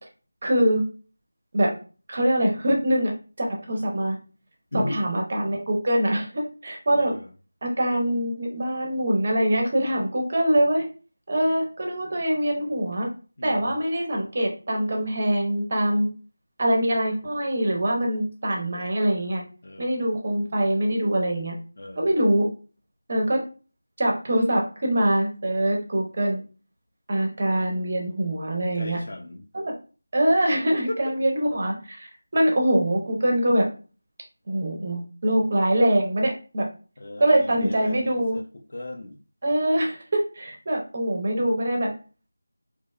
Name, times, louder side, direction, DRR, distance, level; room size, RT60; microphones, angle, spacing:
voice 1, 0.4-0.8 1.5-1.7 2.1-3.1 3.4-4.2 4.7-7.1 7.6-10.9 11.3-13.1 13.4-16.1 16.6-19.4 19.8-21.5 21.9-22.5 23.1-23.4 24.0-26.4 27.1-29.0 29.5-29.7 30.1-33.7 34.5-36.7 37.2-38.4 39.4-41.9, right 1 dB, 25° right, 0.4 m, -23 dB
voice 2, 4.7-5.0 6.9-7.3 13.4-13.8 19.6-20.1 21.8-22.1 28.7-29.4 30.9-31.1 37.0-39.2, left 1 dB, 35° left, 0.3 m, -36 dB
2.6 x 2.1 x 2.2 m
figure-of-eight pair, 180°, 0 cm